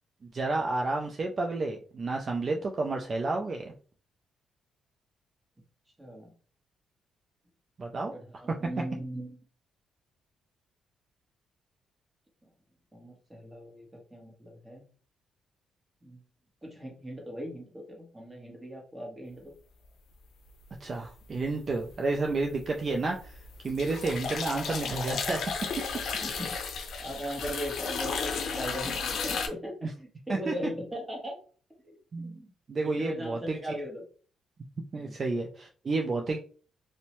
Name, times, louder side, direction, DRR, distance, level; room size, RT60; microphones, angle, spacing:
voice 1, 0.3-3.7 7.8-8.4 20.8-23.3 23.6-25.4 29.8-29.9 30.3-30.5 32.1-32.4 32.7-33.6 34.9-36.4, right 3 dB, 40° right, 2 dB, 0.4 m, -31 dB
voice 2, 6.0-6.3 8.1-9.4 12.9-14.8 16.0-16.2 16.6-19.5 26.2-26.5 27.0-31.4 31.8-32.5 32.8-34.0 34.9-35.1, equal, 10° right, -1 dB, 1.1 m, -39 dB
sound 1, 21.3-21.9 22.3-29.5, left 5 dB, 65° left, 0.5 m, -34 dB
2.6 x 2.1 x 3.0 m, 0.41 s
cardioid pair, 90°, 0 cm